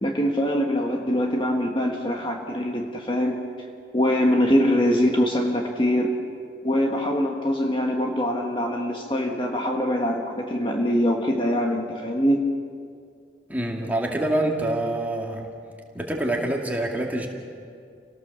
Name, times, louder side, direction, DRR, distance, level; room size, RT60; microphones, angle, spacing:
voice 1, 0.0-3.4 3.9-6.1 6.6-12.4, equal, 25° left, 1 dB, 1.5 m, -23 dB
voice 2, 13.5-15.4 15.9-17.3, right 1 dB, 10° right, 0 dB, 2.4 m, -26 dB
28.5 x 18.0 x 6.9 m, 2.3 s
head